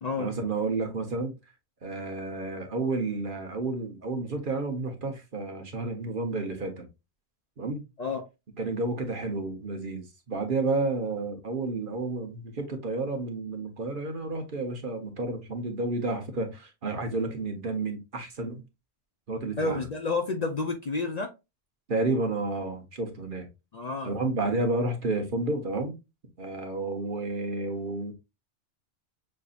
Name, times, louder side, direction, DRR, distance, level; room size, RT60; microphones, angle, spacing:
voice 1, 0.2-1.3 1.8-6.9 7.6-7.8 8.6-18.6 19.3-19.9 21.9-23.5 24.0-26.0 26.4-28.1, right 3 dB, 50° right, 1.1 m, -31 dB
voice 2, 19.6-21.3 23.7-24.1, left 3 dB, 45° left, 0.6 m, -30 dB
6.4 x 2.7 x 2.4 m
omnidirectional pair, 1.2 m